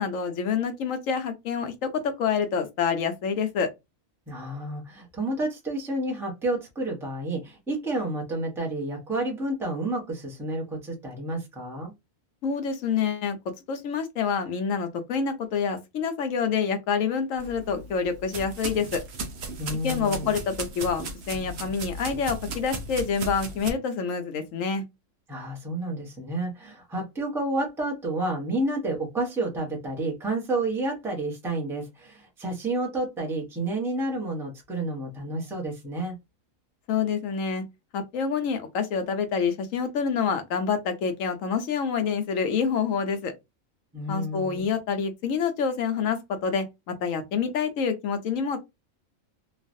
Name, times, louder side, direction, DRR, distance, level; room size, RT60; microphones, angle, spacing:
voice 1, 0.0-3.7 12.4-13.4 13.7-19.0 19.8-24.8 36.9-37.6 37.9-43.3 44.1-48.6, left 6 dB, 75° left, 1.1 m, -27 dB
voice 2, 4.3-11.9 19.6-20.3 25.3-36.1 43.9-44.7, right 2 dB, ahead, 0.8 m, -30 dB
sound 1, 17.4-23.7, right 2 dB, 60° right, 0.9 m, -36 dB
3.1 x 2.4 x 2.5 m
omnidirectional pair, 1.4 m